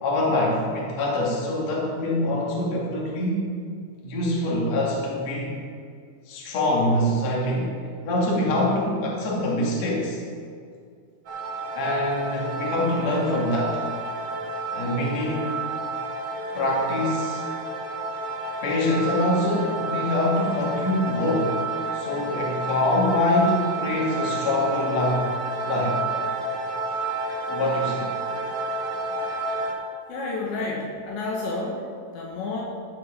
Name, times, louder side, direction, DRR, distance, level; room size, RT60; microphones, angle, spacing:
voice 1, 0.0-3.5 4.0-5.5 6.3-7.7 8.0-10.2 11.7-13.8 14.7-15.5 16.5-17.4 18.6-21.6 21.9-25.3 25.6-26.0 27.5-28.1, left 1 dB, 45° left, -4 dB, 2.6 m, -24 dB
sound 1, 11.3-29.7, right 2 dB, 60° right, 2.6 m, -30 dB
voice 2, 30.1-31.9 32.1-32.6, left 3 dB, 70° left, -2 dB, 3.3 m, -30 dB
14.5 x 6.4 x 5.7 m, 2.1 s
omnidirectional pair, 5.6 m